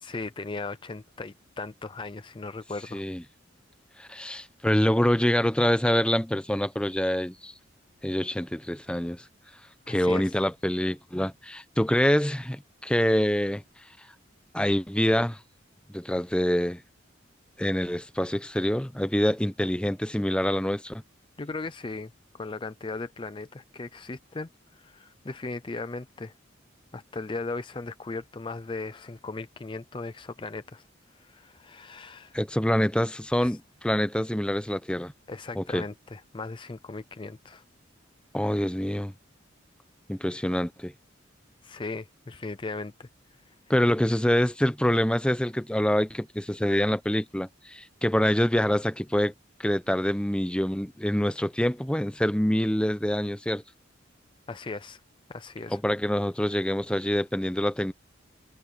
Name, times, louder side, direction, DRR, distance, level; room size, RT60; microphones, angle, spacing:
voice 1, 0.0-3.0 9.8-10.4 21.4-26.3 26.9-30.9 31.1-32.4 33.4-33.6 35.3-37.6 41.6-43.1 43.5-43.6 54.5-55.0 55.3-55.8, left 3 dB, 25° left, 0.5 m, -37 dB
voice 2, 2.9-3.2 4.0-7.5 8.0-9.2 9.9-13.6 14.5-15.4 15.9-16.8 17.6-21.0 32.3-35.1 35.5-35.8 38.3-39.1 40.1-40.9 43.7-49.3 49.6-53.6 55.7-57.9, equal, 5° left, 0.9 m, -26 dB
head